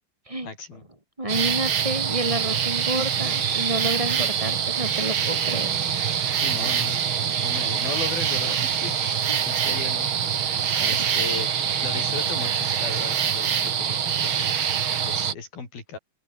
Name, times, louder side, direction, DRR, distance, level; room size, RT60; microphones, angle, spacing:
voice 1, 0.4-0.8 6.4-7.0 7.4-10.1 10.8-11.5 11.8-14.6 15.1-16.0, left 4 dB, 60° left, 8.6 m, -36 dB
voice 2, 1.2-5.7 9.3-9.4, right 1 dB, 5° right, 4.6 m, -29 dB
sound 1, 1.3-15.3, right 8 dB, 50° right, 1.5 m, -25 dB
open air
omnidirectional pair, 4.9 m